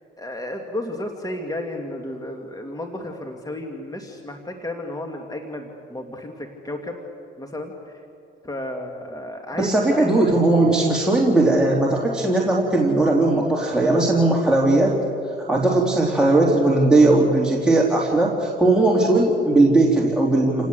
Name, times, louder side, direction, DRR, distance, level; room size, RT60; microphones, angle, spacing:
voice 1, 0.2-7.0 7.4-7.7 8.4-10.3, left 1 dB, 20° left, 3 dB, 2.5 m, -32 dB
voice 2, 9.5-15.0 15.5-20.7, right 2 dB, 5° right, -4 dB, 3.4 m, -18 dB
29.5 x 18.5 x 8.1 m, 2.7 s
cardioid pair, 90°, 20 cm